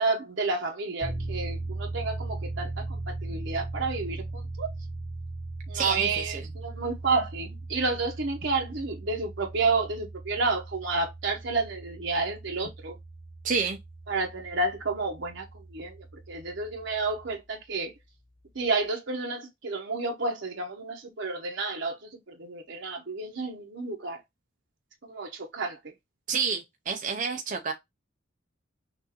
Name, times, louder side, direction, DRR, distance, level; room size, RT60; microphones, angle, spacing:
voice 1, 0.0-4.7 5.7-12.9 14.1-15.4 15.7-16.0 16.3-17.9 18.5-22.1 22.4-24.2 25.0-25.8, right 3 dB, 60° right, 0.9 m, -30 dB
sound 1, 1.0-17.4, right 2 dB, 50° left, 1.2 m, -38 dB
voice 2, 5.7-6.4 13.4-13.8 26.3-27.7, right 5 dB, 40° right, 0.5 m, -29 dB
6.0 x 2.6 x 2.9 m
head